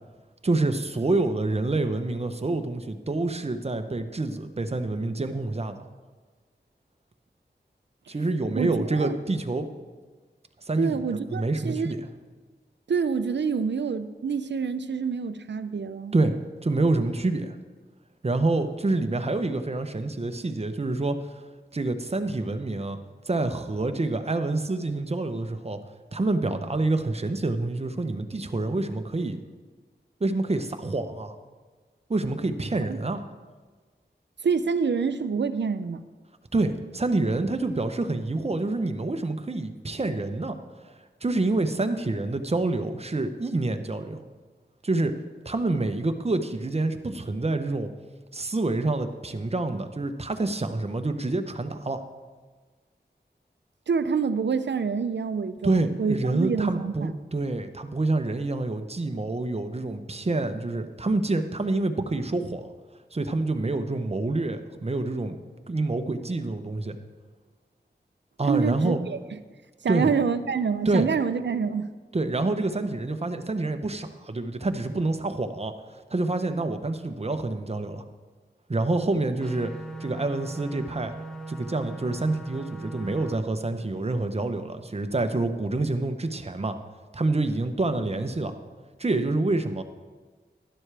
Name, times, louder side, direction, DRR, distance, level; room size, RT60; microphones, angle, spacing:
voice 1, 0.4-5.8 8.1-9.7 10.6-12.0 16.1-16.3 16.6-17.6 18.2-21.4 21.7-23.0 23.3-25.8 26.1-29.4 30.2-31.4 32.1-33.2 36.5-40.6 40.8-40.9 41.2-44.2 44.8-45.2 45.4-47.9 48.3-52.0 55.6-62.7 63.1-65.4 65.7-67.0 68.4-69.0 69.9-70.1 70.9-71.1 72.1-78.0 78.7-79.7 80.0-81.2 81.5-86.8 87.1-88.5 89.0-89.8, right 2 dB, 35° right, 7 dB, 0.8 m, -27 dB
voice 2, 8.5-9.1 10.8-12.1 12.9-16.1 32.9-33.0 34.4-36.0 53.9-57.1 68.5-69.2 69.8-71.9, right 5 dB, 75° right, 12 dB, 0.5 m, -27 dB
sound 1, 79.4-83.4, right 2 dB, 5° left, 0.9 m, -39 dB
12.0 x 11.0 x 3.4 m, 1.4 s
wide cardioid pair, 70°, 18 cm